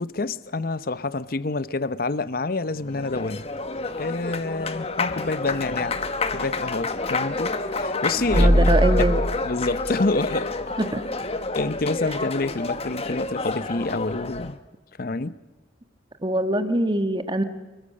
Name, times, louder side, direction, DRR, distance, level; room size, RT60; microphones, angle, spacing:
voice 1, 0.0-3.5 4.0-6.0 6.3-8.7 9.0-9.1 9.4-10.6 11.5-14.6 15.0-15.4, left 3 dB, 55° left, 0.8 m, -27 dB
Applause, 2.7-14.6, left 3 dB, 35° left, 1.3 m, -29 dB
sound 1, 5.9-6.7 8.2-10.7 11.2-11.3 14.3-14.5, equal, 5° left, 5.0 m, -23 dB
voice 2, 8.3-9.2 10.8-11.0 16.2-17.4, right 1 dB, 25° right, 1.5 m, -23 dB
26.5 x 22.5 x 6.6 m
head